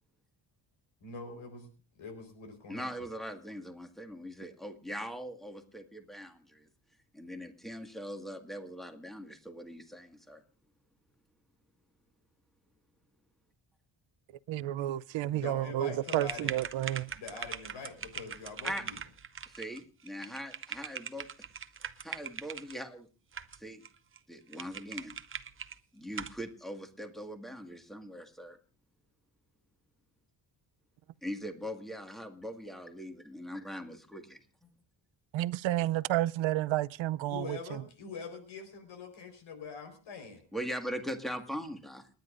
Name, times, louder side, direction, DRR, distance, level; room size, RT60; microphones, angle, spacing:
voice 1, 1.0-1.7 2.0-2.9 15.3-16.5 17.1-19.0 37.3-40.4, left 4 dB, 75° left, 4.5 m, -44 dB
voice 2, 2.7-6.7 7.1-10.4 18.6-18.8 19.5-21.5 22.0-23.1 23.6-23.8 24.3-25.1 25.9-28.6 31.2-34.7 40.5-42.1, equal, ahead, 1.9 m, -41 dB
voice 3, 14.5-17.1 35.3-37.8, right 14 dB, 75° right, 0.7 m, -31 dB
sound 1, 16.0-22.8 23.3-23.9 24.2-24.3 24.5-25.8 26.1-26.4, right 7 dB, 25° right, 0.7 m, -41 dB
30.0 x 10.5 x 2.6 m
cardioid pair, 120°, 46 cm